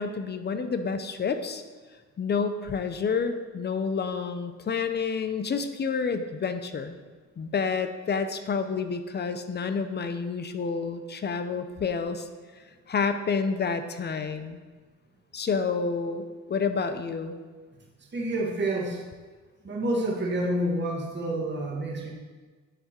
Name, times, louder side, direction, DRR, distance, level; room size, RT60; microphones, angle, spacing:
voice 1, 0.0-1.6 2.2-7.0 7.4-12.3 12.9-14.6 15.3-17.4, left 5 dB, 35° left, 9 dB, 0.6 m, -29 dB
voice 2, 18.1-19.0 19.6-22.1, right 1 dB, 35° right, -2 dB, 1.7 m, -28 dB
10.0 x 3.5 x 4.3 m, 1.4 s
cardioid pair, 90°, 30 cm